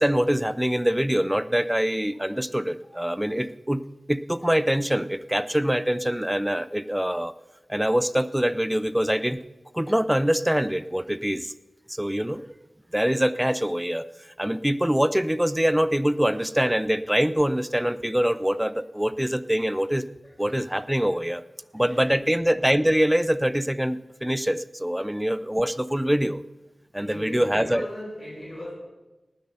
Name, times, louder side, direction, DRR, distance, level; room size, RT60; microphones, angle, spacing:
voice 1, 0.0-3.8 4.1-7.3 7.7-9.4 9.7-11.5 11.9-12.4 12.9-20.0 20.4-21.4 21.7-26.4 26.9-27.9, equal, 5° right, 15 dB, 0.4 m, -24 dB
voice 2, 21.7-22.2 27.0-28.7, left 1 dB, 30° left, -4 dB, 5.0 m, -39 dB
19.0 x 7.8 x 5.5 m, 1.1 s
wide cardioid pair, 95°, 0 cm